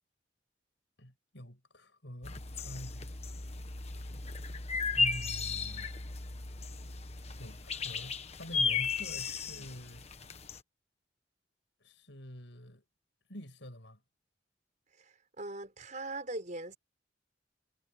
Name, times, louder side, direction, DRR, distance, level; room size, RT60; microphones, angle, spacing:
voice 1, 1.0-3.1 4.9-5.9 7.4-10.1 11.8-12.8 13.3-14.0, equal, 70° left, 7.0 m, -46 dB
sound 1, 2.2-10.6, left 4 dB, 35° left, 1.4 m, -35 dB
voice 2, 15.0-16.8, right 2 dB, 40° right, 5.3 m, -41 dB
head